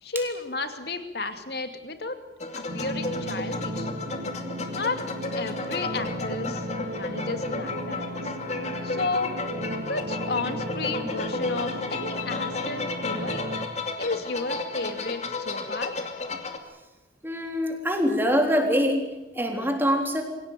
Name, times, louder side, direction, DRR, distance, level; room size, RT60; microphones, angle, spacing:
voice 1, 0.0-2.2 2.5-3.9 4.7-5.0 5.3-6.7 6.9-8.3 8.8-9.3 9.9-13.5 14.0-15.9, left 3 dB, 60° left, 7 dB, 2.6 m, -32 dB
sound 1, 2.4-16.6, left 3 dB, 40° left, 2.5 m, -33 dB
sound 2, 2.7-13.7, equal, 70° right, 3.4 m, -35 dB
voice 2, 17.2-19.0 19.4-20.2, equal, 10° right, 3 dB, 3.7 m, -24 dB
26.0 x 17.0 x 9.1 m, 1.1 s
head